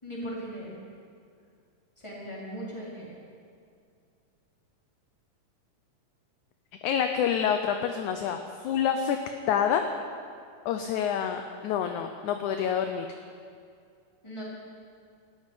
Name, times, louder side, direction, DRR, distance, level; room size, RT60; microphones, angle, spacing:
voice 1, 0.0-0.8 2.0-3.1 14.2-14.4, equal, 10° left, -6 dB, 3.8 m, -38 dB
voice 2, 6.8-9.2 9.5-9.8 10.7-13.1, left 8 dB, 75° left, 6 dB, 1.9 m, -27 dB
13.0 x 9.7 x 9.9 m, 2.3 s
omnidirectional pair, 4.0 m